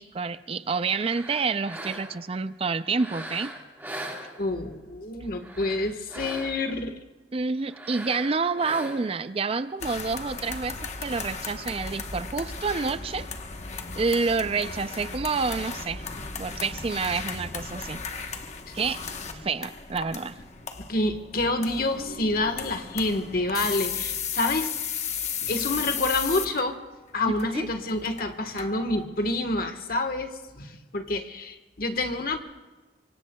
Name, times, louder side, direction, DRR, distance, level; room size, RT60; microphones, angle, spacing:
voice 1, 0.0-3.5 7.3-13.3 13.9-16.0 16.4-18.0 18.7-19.0 19.3-20.4 27.3-27.7, right 4 dB, 35° right, 13 dB, 0.4 m, -28 dB
sound 1, 0.8-2.3 2.9-4.8 5.3-6.8 7.7-9.3, right 1 dB, 10° right, 1.8 m, -40 dB
voice 2, 4.4-7.0 20.8-24.7 25.5-26.8 27.1-32.4, left 2 dB, 55° left, 6 dB, 1.3 m, -28 dB
sound 2, 9.8-29.0, left 6 dB, 40° left, 1.1 m, -35 dB
24.5 x 24.5 x 2.3 m, 1.2 s
head